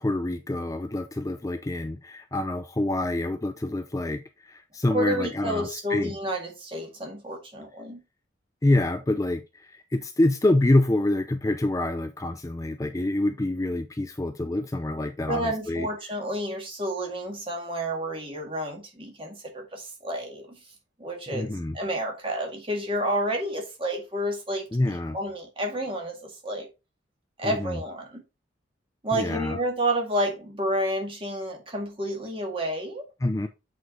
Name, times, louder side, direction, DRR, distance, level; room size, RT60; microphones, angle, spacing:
voice 1, 0.0-6.1 8.6-15.9 21.3-21.8 24.7-25.2 27.4-27.8 29.1-29.6 33.2-33.5, left 1 dB, 15° left, 0.4 m, -26 dB
voice 2, 4.9-8.0 15.3-20.5 21.0-26.7 27.4-28.2 29.0-33.1, right 1 dB, 30° right, 2.1 m, -30 dB
8.0 x 4.7 x 3.8 m
head